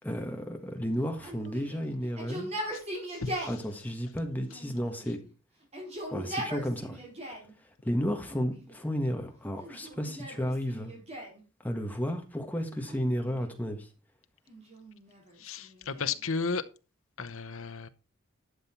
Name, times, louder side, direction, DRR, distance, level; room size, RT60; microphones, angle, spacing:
voice 1, 0.0-2.5 3.5-5.2 6.1-7.0 7.8-10.9 11.6-13.9, equal, 10° left, 1.6 m, -32 dB
Yell, 1.2-3.6 4.5-5.2 5.6-7.5 8.2-8.9 9.6-11.4 12.8-13.6 14.5-16.2, equal, 30° right, 4.1 m, -40 dB
voice 2, 3.1-3.5 15.4-16.6 17.2-17.9, left 4 dB, 80° left, 0.9 m, -33 dB
11.5 x 7.0 x 4.3 m
head